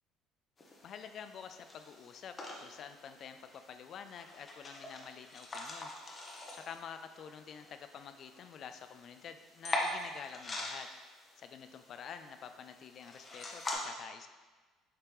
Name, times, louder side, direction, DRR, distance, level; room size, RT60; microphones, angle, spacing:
sound 1, 0.6-13.8, left 2 dB, 30° left, 0.8 m, -44 dB
voice 1, 0.8-5.9 6.5-10.9 11.4-14.3, left 7 dB, 55° left, 9 dB, 0.3 m, -48 dB
5.0 x 2.9 x 3.1 m, 1.3 s
supercardioid pair, 80°, 0 cm